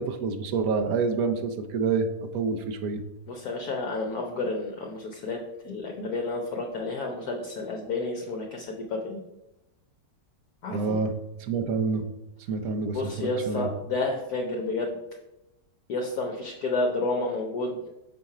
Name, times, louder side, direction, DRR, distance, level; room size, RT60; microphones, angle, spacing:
voice 1, 0.0-3.0 10.7-11.1 11.4-12.0 12.5-13.7, right 4 dB, 65° right, 7 dB, 1.0 m, -27 dB
voice 2, 3.3-5.4 5.6-9.2 10.6-10.9 12.9-15.0 15.9-17.9, left 2 dB, 65° left, 1 dB, 1.2 m, -30 dB
6.3 x 4.3 x 4.8 m, 0.95 s
omnidirectional pair, 1.9 m